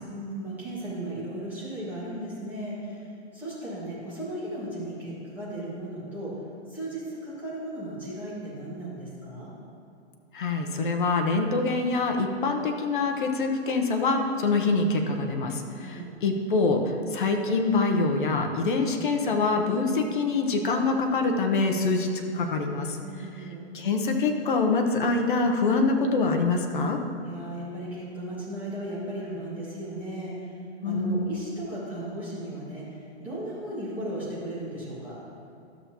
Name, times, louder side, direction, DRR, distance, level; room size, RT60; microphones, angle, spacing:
voice 1, 0.1-3.1 3.3-6.4 6.7-9.5 15.8-16.1 23.0-23.7 27.2-30.6 30.8-35.2, right 1 dB, 5° right, -12 dB, 1.8 m, -36 dB
voice 2, 10.3-22.1 22.3-23.0 23.7-27.0 30.8-31.3, left 3 dB, 45° left, 3 dB, 0.9 m, -25 dB
13.0 x 6.9 x 3.0 m, 2.6 s
hypercardioid pair, 175°, 36 cm